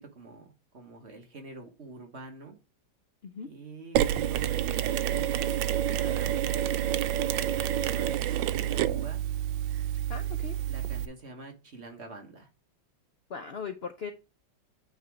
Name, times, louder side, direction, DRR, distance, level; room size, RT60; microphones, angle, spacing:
voice 1, 0.1-2.6 3.4-8.6 8.9-9.2 10.7-12.5, right 3 dB, 40° right, 4 dB, 1.5 m, -46 dB
Mechanisms, 4.0-11.1, right 11 dB, 90° right, 1.3 m, -28 dB
voice 2, 10.1-10.6 13.3-14.1, left 6 dB, 80° left, 7 dB, 0.5 m, -38 dB
8.9 x 3.6 x 4.8 m, 0.28 s
omnidirectional pair, 2.0 m